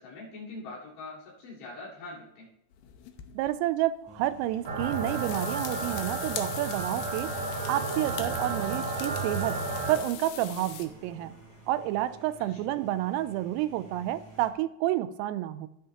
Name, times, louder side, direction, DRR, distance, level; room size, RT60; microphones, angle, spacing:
voice 1, 0.0-2.5 12.5-12.6, left 2 dB, 60° left, -7 dB, 5.9 m, -43 dB
sound 1, 2.7-3.5 4.5-10.9, left 10 dB, 85° left, 2.2 m, -41 dB
voice 2, 3.3-7.3 7.7-9.6 9.9-11.3 11.7-15.7, right 14 dB, 90° right, 14 dB, 3.2 m, -29 dB
sound 2, 4.0-14.5, right 1 dB, 20° right, 0.8 m, -50 dB
sound 3, 4.7-10.0, right 3 dB, 70° right, 1.8 m, -32 dB
21.0 x 7.2 x 2.9 m, 0.80 s
omnidirectional pair, 5.8 m